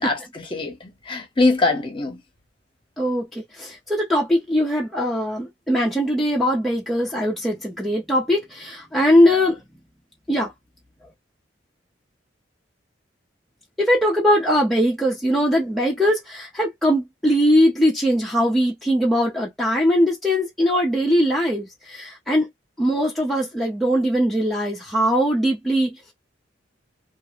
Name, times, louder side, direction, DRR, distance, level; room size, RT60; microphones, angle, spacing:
voice 1, 0.0-2.2, left 3 dB, 30° left, 0.8 m, -23 dB
voice 2, 3.0-9.6 10.3-10.5 13.8-22.5 22.8-26.0, equal, ahead, 0.5 m, -20 dB
2.3 x 2.1 x 2.9 m
head